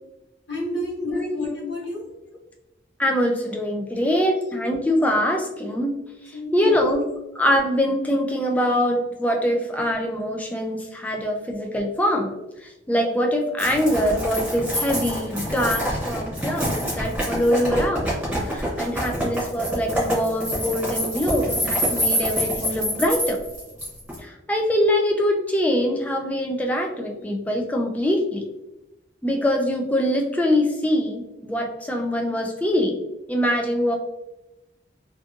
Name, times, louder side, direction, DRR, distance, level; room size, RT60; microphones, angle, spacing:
voice 1, 0.5-2.0 4.3-4.4 6.3-6.9 11.1-11.4, left 1 dB, 85° left, -4 dB, 0.9 m, -31 dB
voice 2, 1.1-1.4 3.0-5.9 6.5-7.0 7.4-12.3 12.6-18.1 18.4-23.4 24.2-28.4 29.2-33.0 33.3-34.0, equal, 10° left, 1 dB, 0.3 m, -23 dB
sound 1, 13.6-24.2, equal, 5° right, 0.9 m, -26 dB
2.6 x 2.5 x 2.4 m, 0.98 s
head